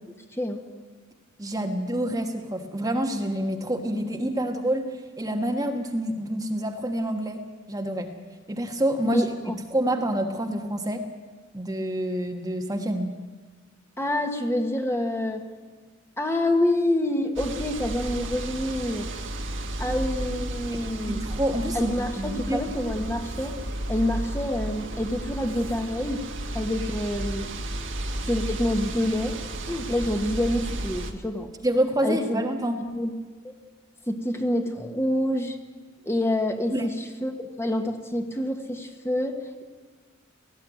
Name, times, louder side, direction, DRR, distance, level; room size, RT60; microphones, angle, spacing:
voice 1, 1.4-7.4 7.7-8.1 8.5-9.2 9.7-11.1 11.5-13.1 19.8-20.0 21.0-22.6 31.6-32.8 36.7-36.9, right 1 dB, 20° right, 3 dB, 1.4 m, -27 dB
voice 2, 9.0-9.6 14.0-15.4 16.2-19.1 19.8-21.2 21.7-23.5 23.9-26.2 26.5-27.5 28.3-29.4 29.7-31.5 32.0-32.4 32.9-33.1 33.4-33.5 34.1-35.6 36.0-39.6, left 1 dB, 10° left, 4 dB, 1.6 m, -27 dB
sound 1, 17.4-31.1, right 1 dB, 60° right, 1.8 m, -33 dB
18.5 x 15.5 x 9.2 m, 1.5 s
head